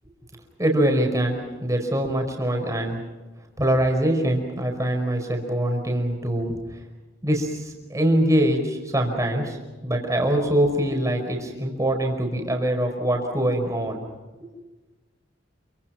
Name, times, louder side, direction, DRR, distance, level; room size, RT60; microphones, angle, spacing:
voice 1, 0.6-1.4 1.6-3.0 3.6-6.5 7.2-9.6 9.8-14.0 14.4-14.5, right 1 dB, 15° right, 3 dB, 5.1 m, -23 dB
28.5 x 25.0 x 5.9 m, 1.2 s
head